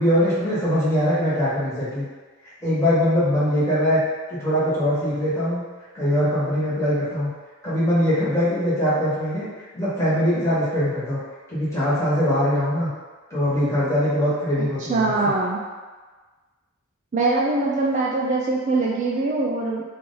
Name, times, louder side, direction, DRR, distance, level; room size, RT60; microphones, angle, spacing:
voice 1, 0.0-2.1 2.6-4.0 4.3-5.6 5.9-7.3 7.6-9.5 9.7-11.2 11.5-12.9 13.3-15.3, equal, 15° left, -10 dB, 1.3 m, -22 dB
voice 2, 14.8-15.6 17.1-19.8, right 3 dB, 35° right, -3 dB, 0.3 m, -22 dB
3.1 x 2.6 x 3.8 m, 1.3 s
head